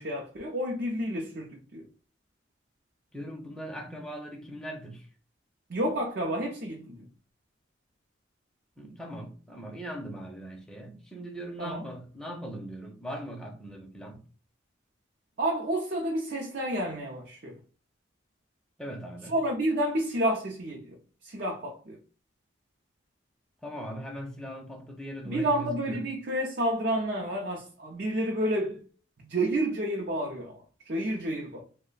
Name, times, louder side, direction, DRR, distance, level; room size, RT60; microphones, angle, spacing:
voice 1, 0.0-1.8 5.7-7.1 11.6-11.8 15.4-17.6 19.3-21.0 21.2-22.0 25.2-28.8 29.2-31.6, right 1 dB, 55° right, 0.6 m, -30 dB
voice 2, 3.1-5.1 8.8-14.2 18.8-19.3 23.6-26.1, right 1 dB, 5° left, 0.6 m, -40 dB
3.1 x 2.1 x 3.8 m
head